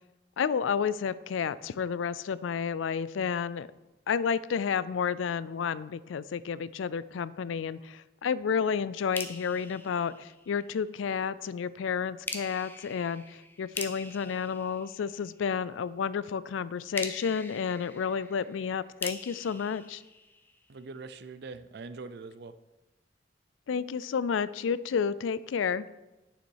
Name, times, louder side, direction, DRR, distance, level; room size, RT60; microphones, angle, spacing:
voice 1, 0.4-3.7 4.1-20.0 23.7-25.9, left 6 dB, 90° left, 17 dB, 0.4 m, -31 dB
sound 1, 9.1-10.9 12.3-15.6 16.9-20.9, left 2 dB, 10° left, 0.6 m, -43 dB
voice 2, 20.7-22.5, right 3 dB, 60° right, 12 dB, 0.5 m, -43 dB
9.2 x 6.8 x 4.7 m, 1.1 s
head